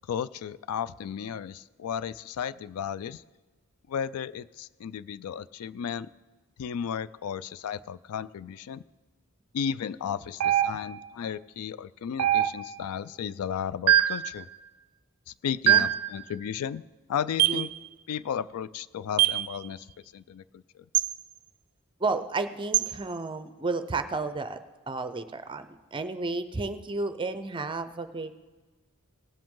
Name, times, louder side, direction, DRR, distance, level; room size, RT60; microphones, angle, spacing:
voice 1, 0.1-3.2 3.9-6.1 6.6-8.8 9.5-14.5 15.4-16.8 17.1-17.7 18.1-19.9 20.1-20.8, left 8 dB, 75° left, 17 dB, 0.3 m, -34 dB
sound 1, 10.4-11.1 12.2-12.9 13.9-14.3 15.7-16.1 17.4-17.7 19.2-19.5 20.9-21.1 22.7-22.9, right 12 dB, 80° right, 0.4 m, -23 dB
voice 2, 22.0-24.6 24.9-28.4, right 3 dB, 25° right, 10 dB, 0.6 m, -32 dB
18.0 x 7.7 x 3.7 m, 1.3 s
head